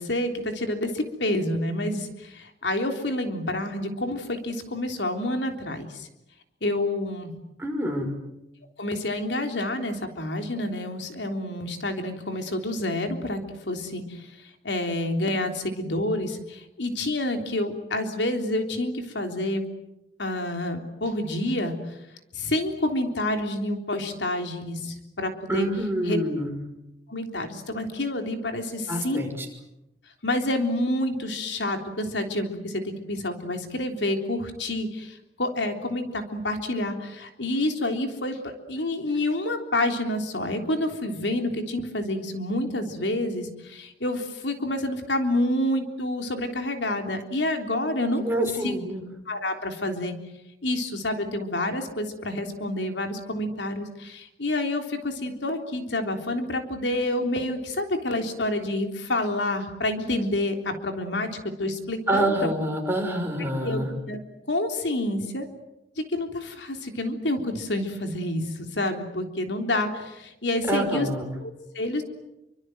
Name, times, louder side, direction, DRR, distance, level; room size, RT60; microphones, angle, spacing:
voice 1, 0.0-6.1 6.6-7.3 8.8-14.3 14.6-19.6 20.2-21.7 22.3-25.7 26.1-26.2 27.1-29.2 30.2-48.2 48.6-48.7 49.3-50.1 50.6-61.3 61.6-62.5 63.6-63.8 64.1-64.2 64.5-65.5 66.0-71.1 71.4-72.0, left 1 dB, 75° left, 5 dB, 3.5 m, -28 dB
voice 2, 7.6-8.1 25.5-26.6 28.9-29.5 48.2-49.0 62.1-63.9 70.7-71.3, right 1 dB, 15° right, 2 dB, 5.8 m, -26 dB
28.5 x 25.0 x 7.9 m, 0.90 s
head